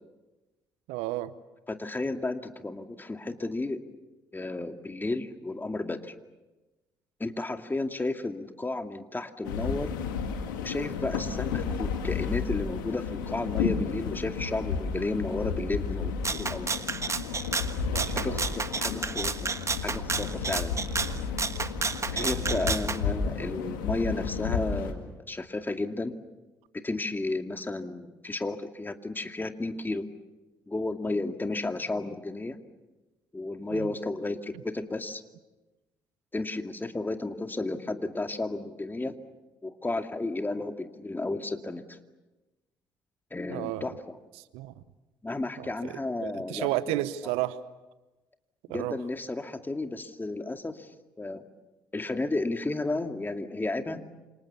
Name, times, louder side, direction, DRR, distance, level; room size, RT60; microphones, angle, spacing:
voice 1, 0.9-1.3 17.9-18.4 22.2-22.7 33.7-33.8 43.5-43.9 44.5-44.7 45.6-45.9 46.2-47.6 48.7-49.0, right 16 dB, 75° right, 1.0 m, -32 dB
voice 2, 1.7-3.8 4.3-6.1 7.2-10.0 10.6-16.7 18.2-19.5 19.8-20.8 22.1-26.1 26.7-30.1 30.7-32.6 33.3-35.2 36.3-39.2 39.6-42.0 43.3-44.2 45.2-46.8 48.7-50.9 51.2-51.4 51.9-54.1, left 2 dB, 20° left, 2.4 m, -33 dB
sound 1, 9.4-24.9, left 6 dB, 85° left, 2.3 m, -32 dB
Rattle (instrument), 16.2-23.0, right 4 dB, 30° right, 1.5 m, -31 dB
29.0 x 27.0 x 7.1 m
hypercardioid pair, 50°, 10 cm